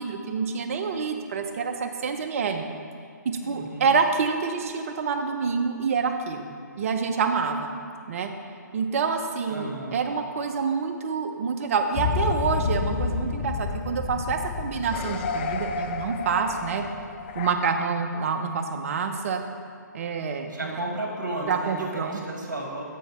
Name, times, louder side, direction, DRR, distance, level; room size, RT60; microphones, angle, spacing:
voice 1, 0.0-2.6 3.2-6.5 6.8-7.7 8.1-8.3 8.7-16.8 17.3-19.4 19.9-20.8 21.5-22.2, right 5 dB, 45° right, 6 dB, 0.6 m, -27 dB
voice 2, 3.4-3.9 9.5-10.1 20.4-22.8, right 1 dB, 70° right, -1 dB, 1.5 m, -34 dB
sound 1, 11.9-17.5, left 6 dB, 35° left, 0.4 m, -30 dB
8.2 x 4.5 x 4.2 m, 2.4 s
figure-of-eight pair, 130°, 10 cm